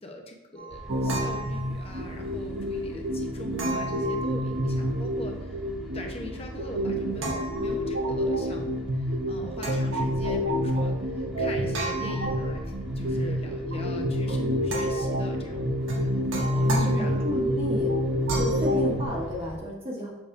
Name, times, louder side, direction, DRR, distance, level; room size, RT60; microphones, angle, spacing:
voice 1, 0.0-5.6 5.9-12.6 12.9-15.7 16.0-17.4 18.6-18.9, left 1 dB, 30° left, 2 dB, 0.9 m, -42 dB
sound 1, 0.6-2.1 3.6-5.0 7.2-8.2 9.6-10.6 11.7-13.2 14.7-15.3 15.9-17.4 18.3-18.7, right 2 dB, 80° right, 1.6 m, -36 dB
sound 2, 0.7-19.6, equal, 5° right, 1.1 m, -43 dB
sound 3, 0.9-19.0, equal, 60° right, 0.8 m, -28 dB
voice 2, 16.6-17.9 18.4-20.1, equal, 30° right, -3 dB, 1.3 m, -32 dB
7.2 x 6.6 x 2.6 m, 1.0 s
head